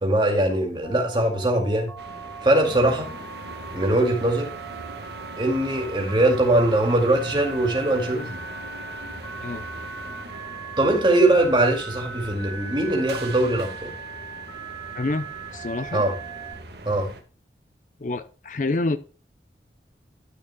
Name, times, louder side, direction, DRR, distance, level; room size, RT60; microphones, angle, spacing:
voice 1, 0.0-1.9 2.4-3.1 3.7-4.5 5.4-8.4 10.8-13.9 15.9-16.1 16.8-17.1, right 1 dB, 25° right, 2.2 m, -21 dB
Telephone, 0.8-16.5, right 4 dB, 20° left, 3.1 m, -39 dB
sound 1, 2.0-17.2, right 2 dB, 70° right, 1.4 m, -40 dB
voice 2, 14.9-15.3 15.5-16.0 18.0-19.0, left 2 dB, 45° left, 0.5 m, -27 dB
12.5 x 6.6 x 2.2 m
head